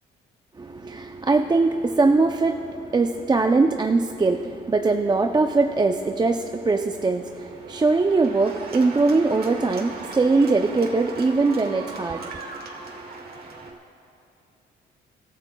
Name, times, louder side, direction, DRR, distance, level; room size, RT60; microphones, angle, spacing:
voice 1, 0.6-13.3 13.6-13.8, right 3 dB, 20° right, 5 dB, 0.5 m, -22 dB
Cheering / Applause, 4.0-13.7, right 3 dB, 50° right, 1.8 m, -41 dB
26.0 x 12.5 x 2.3 m, 2.7 s
cardioid pair, 90°, 20 cm